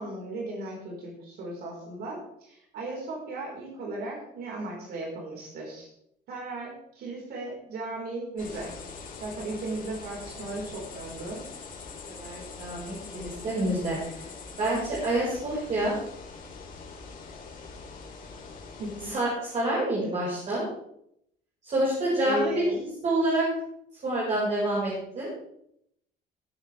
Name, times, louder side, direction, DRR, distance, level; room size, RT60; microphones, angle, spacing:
voice 1, 0.0-5.9 6.3-8.7 9.2-11.4 18.8-19.1 22.2-22.7, right 2 dB, 70° right, -2 dB, 4.6 m, -36 dB
sound 1, 8.4-19.1, left 4 dB, 55° left, 3.4 m, -43 dB
voice 2, 12.1-14.0 14.6-16.0 19.0-20.6 21.6-22.6 23.0-23.4 24.0-25.3, right 1 dB, 45° right, -7 dB, 5.2 m, -27 dB
17.0 x 9.2 x 3.5 m, 0.74 s
cardioid pair, 110°, 17 cm